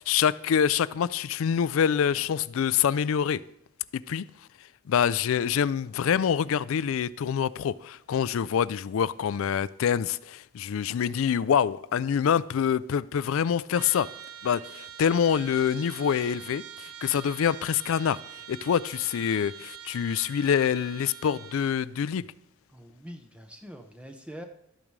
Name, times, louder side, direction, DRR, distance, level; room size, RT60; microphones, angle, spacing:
voice 1, 0.0-3.4 3.9-4.2 4.9-14.1 14.4-18.2 18.5-22.2, left 8 dB, 70° left, 0.3 m, -26 dB
Trumpet, 13.7-21.8, right 9 dB, 85° right, 0.6 m, -45 dB
voice 2, 22.7-24.5, equal, 5° right, 0.6 m, -44 dB
12.5 x 8.7 x 3.2 m
head